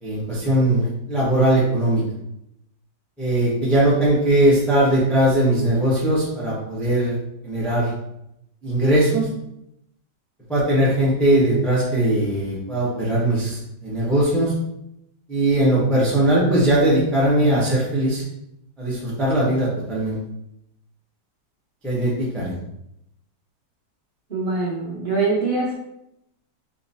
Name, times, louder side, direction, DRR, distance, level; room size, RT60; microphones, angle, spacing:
voice 1, 0.0-2.0 3.2-7.1 7.4-7.9 8.6-9.3 10.5-14.5 15.3-18.2 18.8-20.2 21.8-22.5, right 1 dB, ahead, -7 dB, 0.4 m, -20 dB
voice 2, 24.3-25.7, right 3 dB, 35° right, -6 dB, 1.0 m, -23 dB
3.8 x 2.2 x 4.0 m, 0.81 s
omnidirectional pair, 1.9 m